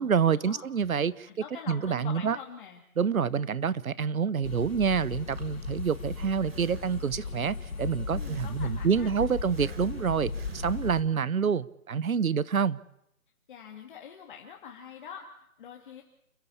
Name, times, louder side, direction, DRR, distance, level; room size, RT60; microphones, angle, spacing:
voice 1, 0.0-1.3 1.7-2.4 3.0-12.8, right 6 dB, 70° right, 20 dB, 1.0 m, -27 dB
voice 2, 1.3-2.8 8.1-9.1 13.5-16.0, left 7 dB, 35° left, 1 dB, 2.2 m, -44 dB
sound 1, 4.4-11.0, left 4 dB, 65° left, 5.5 m, -36 dB
Breathing, 5.3-7.4 8.2-9.1 9.5-11.3, right 6 dB, 45° right, 2.8 m, -49 dB
29.0 x 13.0 x 8.5 m, 0.80 s
figure-of-eight pair, 150°, 43 cm